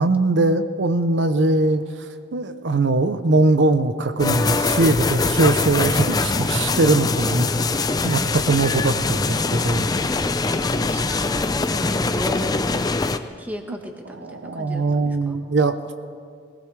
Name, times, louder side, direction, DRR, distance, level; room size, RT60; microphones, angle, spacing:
voice 1, 0.0-7.5 7.8-9.9 14.1-15.9, right 2 dB, 75° right, 9 dB, 0.7 m, -21 dB
sound 1, 4.2-13.2, left 3 dB, 20° left, 0.4 m, -23 dB
voice 2, 10.1-15.4, left 1 dB, 10° right, 3 dB, 1.3 m, -34 dB
20.5 x 19.0 x 3.3 m, 2.2 s
head